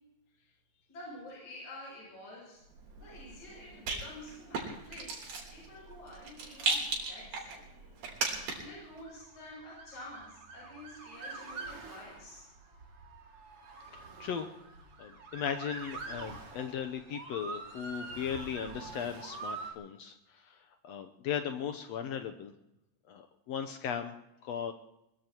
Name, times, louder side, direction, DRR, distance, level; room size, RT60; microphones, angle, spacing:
voice 1, 0.9-2.6 2.9-5.2 5.5-7.7 8.6-12.5, left 1 dB, 55° left, -4 dB, 8.1 m, -49 dB
Rattle, 2.7-8.8, right 3 dB, 90° right, 5.1 m, -37 dB
Motor vehicle (road) / Siren, 8.6-19.7, right 3 dB, 45° right, 3.1 m, -45 dB
voice 2, 13.9-14.5 15.0-20.6 20.8-22.5 23.1-24.7, left 8 dB, 80° left, 7 dB, 1.5 m, -37 dB
22.0 x 21.5 x 3.0 m, 0.86 s
omnidirectional pair, 4.0 m